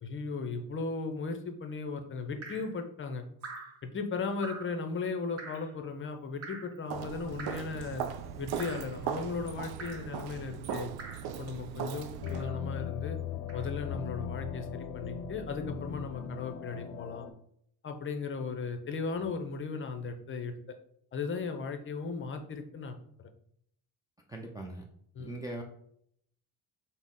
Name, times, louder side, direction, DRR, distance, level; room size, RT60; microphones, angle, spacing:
voice 1, 0.0-3.3 3.8-8.0 8.4-10.9 11.4-13.2 13.5-17.3 17.8-20.8 21.1-23.0 25.1-25.4, left 4 dB, 35° left, 5 dB, 0.6 m, -36 dB
Drip, 2.4-2.7 3.4-3.8 4.4-4.8 5.4-5.7 6.4-6.8 7.4-7.8 8.6-8.9 9.8-10.1 11.0-11.3 12.2-12.6 13.5-13.7, right 4 dB, 40° right, 1.0 m, -45 dB
Walk footsteps, 6.9-12.4, right 8 dB, 80° right, 0.5 m, -38 dB
sound 1, 12.2-17.3, left 8 dB, 75° left, 0.6 m, -38 dB
voice 2, 24.3-24.9 25.2-25.6, right 1 dB, 10° right, 0 dB, 0.3 m, -40 dB
6.0 x 2.1 x 3.6 m, 0.69 s
cardioid pair, 125°, 37 cm